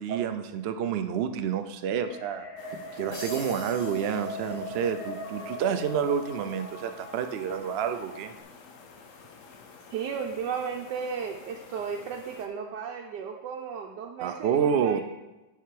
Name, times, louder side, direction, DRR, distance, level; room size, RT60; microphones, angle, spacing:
voice 1, 0.0-2.5 3.0-8.3 14.2-15.0, right 8 dB, 75° right, 8 dB, 0.5 m, -29 dB
sound 1, 2.0-8.4, left 1 dB, 90° left, 2.0 m, -40 dB
sound 2, 2.6-12.5, left 5 dB, 55° left, 1.1 m, -50 dB
sound 3, 3.1-5.2, left 2 dB, 30° left, 0.6 m, -44 dB
voice 2, 9.9-15.0, right 6 dB, 90° right, 1 dB, 1.3 m, -34 dB
10.5 x 4.8 x 4.7 m, 1.1 s
omnidirectional pair, 1.8 m